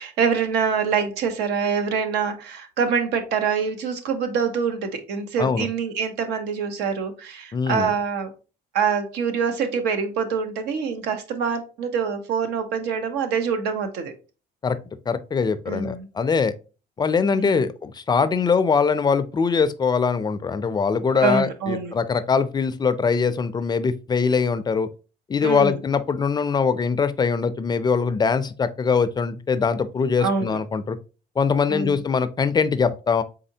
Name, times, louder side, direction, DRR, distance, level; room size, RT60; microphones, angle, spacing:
voice 1, 0.0-8.3 8.7-14.1 15.7-16.1 17.3-17.7 21.2-22.0 25.4-25.8 30.2-30.6 31.7-32.0, right 6 dB, 85° right, 0.8 m, -25 dB
voice 2, 7.5-7.9 14.6-14.8 15.1-16.5 17.0-24.9 25.3-31.0 31.4-33.2, left 5 dB, 25° left, 0.4 m, -22 dB
4.1 x 3.7 x 2.7 m
cardioid pair, 110°, 17 cm